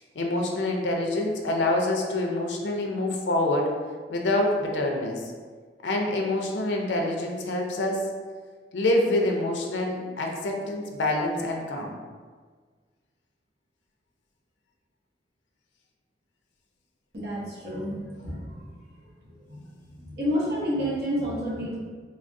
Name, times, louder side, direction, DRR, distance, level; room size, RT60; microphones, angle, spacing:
voice 1, 0.2-3.7 4.1-5.2 5.8-8.0 8.7-12.0, left 1 dB, 90° left, 1 dB, 0.5 m, -26 dB
voice 2, 17.1-18.7 19.3-19.7 20.0-21.8, equal, 60° right, -7 dB, 0.9 m, -30 dB
3.3 x 2.3 x 2.5 m, 1.5 s
head